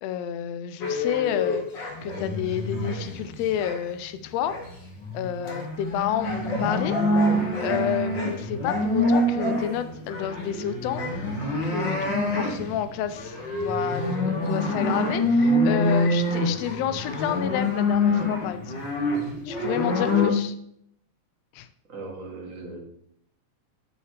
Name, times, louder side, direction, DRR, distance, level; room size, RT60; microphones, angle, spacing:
voice 1, 0.0-1.6 2.0-4.6 5.1-7.0 7.6-11.0 11.6-18.8 19.5-20.5 21.5-21.7, left 10 dB, 85° left, 11 dB, 1.5 m, -30 dB
sound 1, 0.8-3.9 4.2-20.3, left 1 dB, 45° left, 2.0 m, -26 dB
voice 2, 21.9-22.8, right 3 dB, 30° right, -1 dB, 1.9 m, -38 dB
13.0 x 5.7 x 3.3 m, 0.71 s
omnidirectional pair, 3.5 m